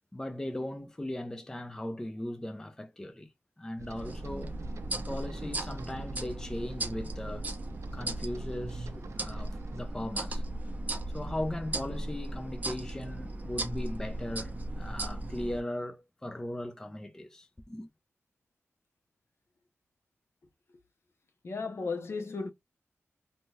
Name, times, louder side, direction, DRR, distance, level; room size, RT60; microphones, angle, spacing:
voice 1, 0.1-3.3 3.6-4.5 5.1-7.5 7.9-10.4 11.1-17.9, left 1 dB, 10° left, 0.4 m, -38 dB
sound 1, 3.8-9.8, right 3 dB, 70° right, 0.4 m, -48 dB
sound 2, 4.0-15.6, right 1 dB, 30° right, 0.6 m, -37 dB
voice 2, 21.4-22.5, left 4 dB, 55° left, 0.6 m, -35 dB
2.7 x 2.3 x 3.1 m
wide cardioid pair, 115°, 5 cm